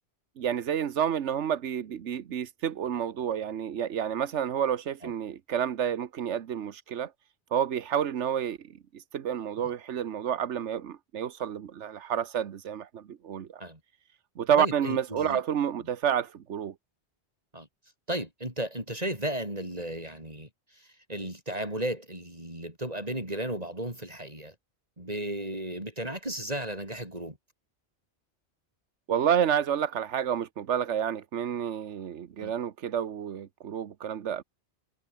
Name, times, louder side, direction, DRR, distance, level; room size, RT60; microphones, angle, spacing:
voice 1, 0.4-7.1 7.5-8.6 8.9-13.6 14.4-16.7 29.1-34.4, right 9 dB, 90° right, 1.3 m, -29 dB
voice 2, 14.6-15.4 17.5-17.7 18.1-24.5 25.0-27.4 32.4-32.5, right 1 dB, 35° right, 7.0 m, -35 dB
omnidirectional pair, 1.2 m